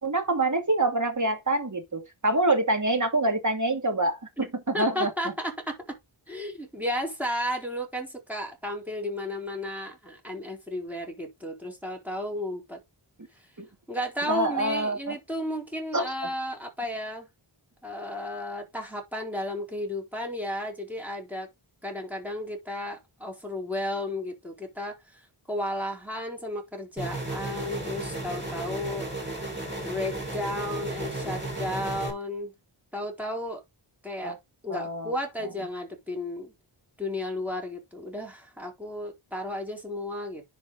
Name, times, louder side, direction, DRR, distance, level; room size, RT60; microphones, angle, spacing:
voice 1, 0.0-5.1 13.6-13.7 14.2-15.2 15.9-16.3 34.2-34.4 34.7-35.1, right 2 dB, 40° right, 2.4 m, -26 dB
voice 2, 4.7-5.9 6.3-12.8 13.3-13.5 13.9-17.3 17.8-21.5 21.8-29.5 29.8-32.5 32.9-33.6 34.0-34.4 34.6-36.5 37.0-40.4, left 1 dB, 5° right, 4.0 m, -33 dB
sound 1, 27.0-32.1, right 2 dB, 20° right, 4.7 m, -34 dB
10.5 x 5.2 x 3.9 m
wide cardioid pair, 75°, 48 cm